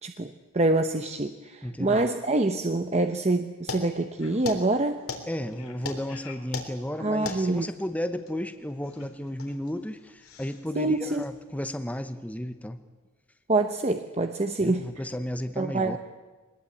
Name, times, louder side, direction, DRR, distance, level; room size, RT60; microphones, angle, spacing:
voice 1, 0.0-5.0 7.0-7.7 10.8-11.2 13.5-14.9 15.6-16.0, right 2 dB, 30° right, 6 dB, 0.9 m, -26 dB
voice 2, 1.6-2.1 5.3-12.8 14.6-16.0, left 1 dB, 5° left, 8 dB, 0.9 m, -33 dB
sound 1, 3.7-11.4, left 4 dB, 80° left, 3.3 m, -40 dB
23.5 x 20.0 x 8.7 m, 1.2 s
head